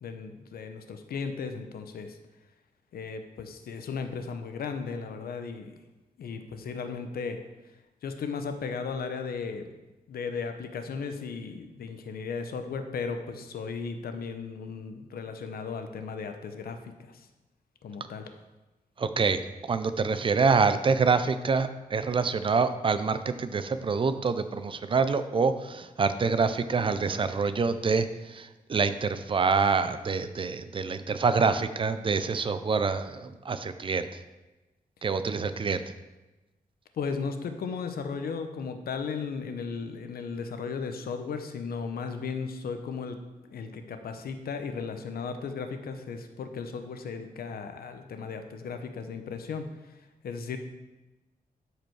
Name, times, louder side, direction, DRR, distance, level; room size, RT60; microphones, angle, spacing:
voice 1, 0.0-2.2 2.9-5.7 6.2-7.4 8.0-9.7 10.1-17.3 17.8-18.3 36.9-43.2 43.5-50.6, left 5 dB, 90° left, 7 dB, 0.9 m, -36 dB
voice 2, 19.0-34.2 35.0-35.8, right 5 dB, 35° right, 11 dB, 0.5 m, -26 dB
12.0 x 5.1 x 4.7 m, 1.1 s
wide cardioid pair, 150°, 15 cm